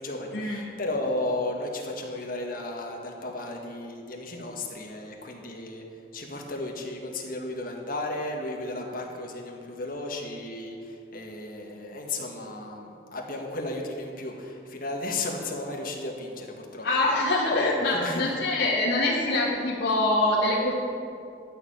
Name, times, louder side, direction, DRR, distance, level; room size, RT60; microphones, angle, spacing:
voice 1, 0.0-5.8 6.1-16.9 17.5-18.3, left 2 dB, 50° left, 1 dB, 1.8 m, -34 dB
voice 2, 16.8-20.7, left 2 dB, 75° left, -8 dB, 2.0 m, -24 dB
12.5 x 6.8 x 8.8 m, 2.4 s
head